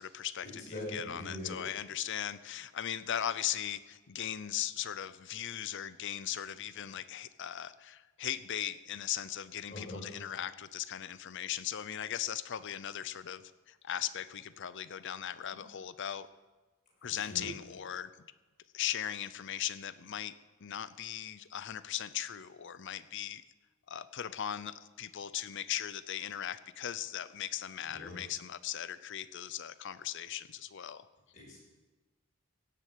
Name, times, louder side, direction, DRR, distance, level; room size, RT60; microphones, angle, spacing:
voice 1, 0.0-16.3 17.0-18.1 18.7-20.3 20.6-23.4 23.9-31.1, left 10 dB, 60° left, 15 dB, 0.6 m, -38 dB
voice 2, 0.7-1.6 9.7-10.0 17.0-17.5 27.9-28.2 31.3-31.6, left 1 dB, 40° left, -4 dB, 6.5 m, -42 dB
16.5 x 7.5 x 8.4 m, 1.2 s
head